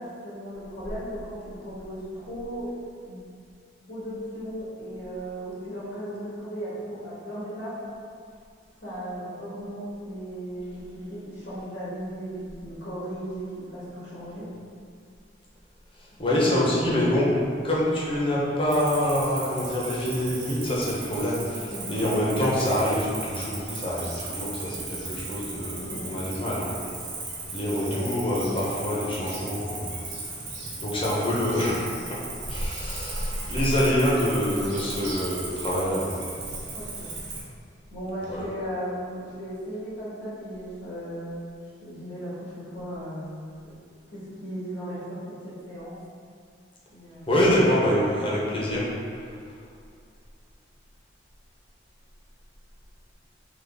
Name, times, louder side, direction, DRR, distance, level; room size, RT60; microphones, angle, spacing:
voice 1, 0.0-2.7 3.0-3.2 3.9-7.8 8.8-14.5 16.4-16.6 21.7-22.0 25.7-26.1 27.6-28.0 36.7-37.1 37.9-41.4 41.8-43.3 43.6-43.7 44.1-45.9 46.9-47.3 48.1-48.2, equal, 85° left, -11 dB, 1.5 m, -36 dB
voice 2, 16.0-17.3 17.6-26.7 27.5-30.4 30.8-36.2 38.3-38.4 47.3-48.9, left 1 dB, 30° left, -6 dB, 0.8 m, -26 dB
Cricket, 18.7-37.4, right 3 dB, 80° right, 1.0 m, -37 dB
3.9 x 3.1 x 3.4 m, 2.3 s
head